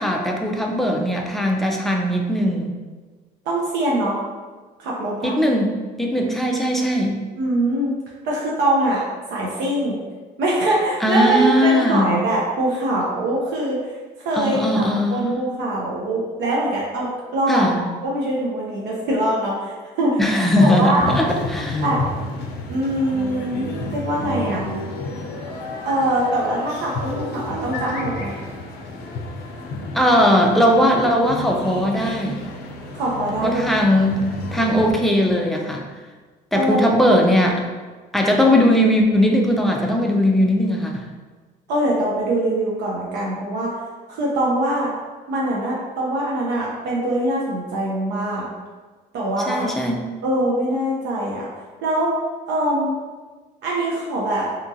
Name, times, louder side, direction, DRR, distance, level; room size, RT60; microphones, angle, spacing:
voice 1, 0.0-2.7 5.2-7.2 11.0-12.1 14.4-15.3 17.5-17.8 20.2-21.8 29.9-32.4 33.4-35.8 36.5-37.6 38.1-41.0 49.5-50.0, equal, ahead, 0 dB, 0.3 m, -19 dB
voice 2, 3.5-4.2 4.8-5.3 7.4-7.9 8.2-9.0 9.3-10.0 10.4-13.8 14.2-20.2 20.6-21.1 21.8-22.0 22.7-24.6 25.8-28.4 32.9-33.6 36.5-37.0 41.7-43.8 44.1-44.9 45.3-48.5 49.1-49.7 50.2-51.5 51.8-52.1 52.5-52.9 53.6-54.5, right 1 dB, 85° right, -4 dB, 0.6 m, -23 dB
sound 1, 21.0-34.9, left 2 dB, 85° left, 0.5 m, -31 dB
2.8 x 2.3 x 2.6 m, 1.3 s
cardioid pair, 110°, 17 cm